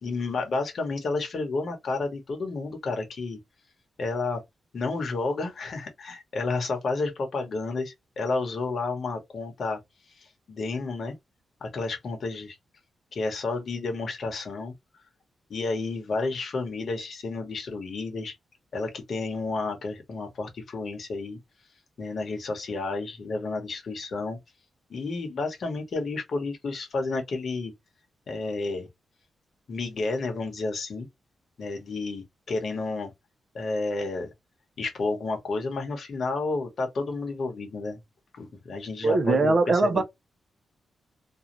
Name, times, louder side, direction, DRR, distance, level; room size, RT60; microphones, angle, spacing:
voice 1, 0.0-3.4 4.0-4.4 4.7-9.8 10.2-11.2 11.6-12.6 13.1-14.7 15.5-18.3 18.7-21.4 22.0-24.4 24.9-27.7 28.3-28.9 29.7-31.1 31.6-33.1 33.5-34.3 34.8-38.0 38.3-40.0, left 3 dB, 50° left, 1.0 m, -31 dB
voice 2, 39.0-40.0, right 3 dB, 35° right, 0.5 m, -21 dB
2.6 x 2.3 x 2.9 m
wide cardioid pair, 170°, 0 cm